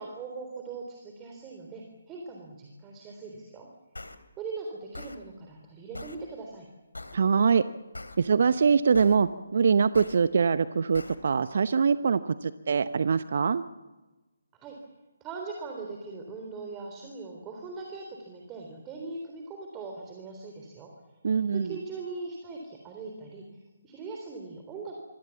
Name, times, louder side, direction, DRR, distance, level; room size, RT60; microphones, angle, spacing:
voice 1, 0.0-3.7 4.4-6.7 14.5-14.8 15.2-20.9 21.5-25.0, right 4 dB, 15° right, 2 dB, 3.6 m, -40 dB
sound 1, 4.0-4.2 4.9-5.2 5.9-6.2 6.9-7.2 7.9-8.2 9.0-9.2 10.0-10.2 11.0-11.2, left 2 dB, 80° left, 3.1 m, -40 dB
voice 2, 7.1-7.6 8.2-13.6 21.2-21.8, right 6 dB, 50° right, 13 dB, 0.8 m, -23 dB
27.0 x 23.5 x 7.2 m, 1.2 s
figure-of-eight pair, 145°, 0 cm